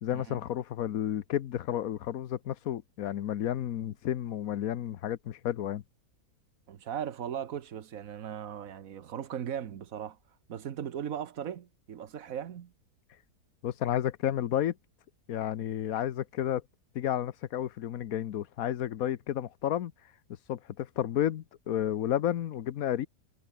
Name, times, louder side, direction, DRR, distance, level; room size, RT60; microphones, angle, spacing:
voice 1, 0.0-5.8 13.6-14.7 15.3-16.6 16.9-19.9 20.5-23.1, left 11 dB, 65° left, 1.2 m, -31 dB
voice 2, 6.7-10.2 10.5-12.7, right 9 dB, 60° right, 1.4 m, -38 dB
omnidirectional pair, 1.7 m